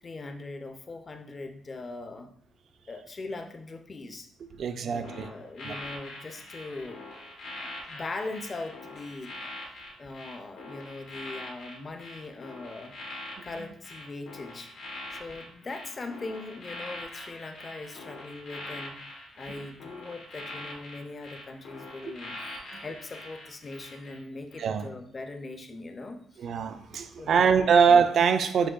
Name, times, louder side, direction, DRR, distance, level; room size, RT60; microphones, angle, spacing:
voice 1, 0.0-2.3 2.9-4.3 4.8-7.0 7.9-9.3 10.0-13.0 13.4-19.0 19.3-26.5 27.1-28.0, left 3 dB, 35° left, 6 dB, 0.5 m, -40 dB
voice 2, 4.6-5.3 5.6-5.7 24.6-24.9 26.4-28.7, right 6 dB, 60° right, 9 dB, 0.3 m, -23 dB
sound 1, 5.0-24.2 24.5-24.8, left 2 dB, 85° left, 1.2 m, -43 dB
6.1 x 2.2 x 2.3 m, 0.69 s
cardioid pair, 90°, 0 cm